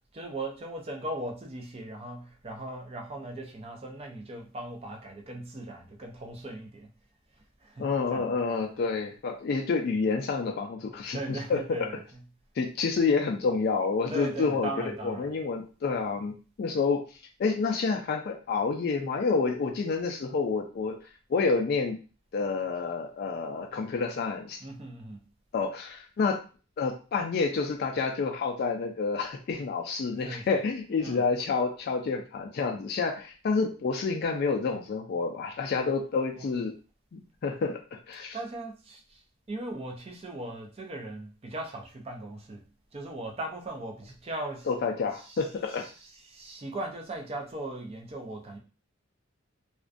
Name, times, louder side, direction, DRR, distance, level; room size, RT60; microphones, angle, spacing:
voice 1, 0.1-6.9 7.6-8.4 11.1-12.3 14.1-15.4 24.6-25.2 30.2-30.6 31.0-31.3 36.3-36.6 38.3-39.2 39.5-42.7 42.9-44.8 45.1-48.6, right 1 dB, 30° right, 1 dB, 0.4 m, -39 dB
voice 2, 7.8-11.6 12.6-14.7 15.0-16.3 16.6-17.0 17.4-20.9 21.3-22.0 22.3-24.6 25.5-26.4 26.8-36.7 37.1-37.8 38.1-38.4 44.7-45.8, left 4 dB, 50° left, 2 dB, 0.3 m, -28 dB
2.5 x 2.2 x 2.4 m, 0.35 s
head